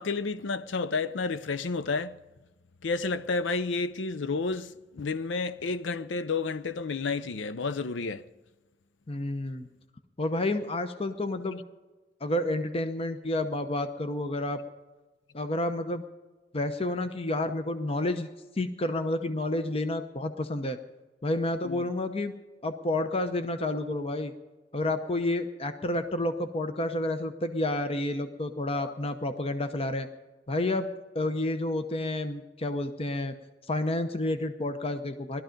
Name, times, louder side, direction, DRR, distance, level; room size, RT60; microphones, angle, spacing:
voice 1, 0.0-2.2 2.8-8.3 21.6-21.9 28.7-29.1, left 4 dB, 80° left, 0.6 m, -31 dB
voice 2, 9.1-9.7 10.2-11.6 12.2-14.6 15.3-16.0 16.5-18.3 18.6-20.8 21.2-22.3 22.6-24.3 24.7-30.1 30.5-30.9 31.1-33.3 33.7-35.4, left 1 dB, 30° left, 0.8 m, -30 dB
18.0 x 12.5 x 5.2 m
head